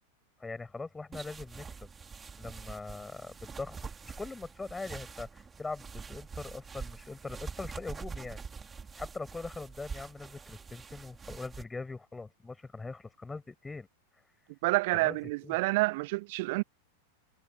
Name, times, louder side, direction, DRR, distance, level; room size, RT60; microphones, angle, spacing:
voice 1, 0.4-1.9 2.4-3.8 4.0-8.4 9.0-13.9 15.0-15.2 15.4-15.6, left 3 dB, 10° left, 6.3 m, -42 dB
sound 1, 1.1-11.6, right 5 dB, 15° right, 4.0 m, -45 dB
voice 2, 14.6-16.6, right 23 dB, 50° right, 0.4 m, -28 dB
figure-of-eight pair, 90°, 0 cm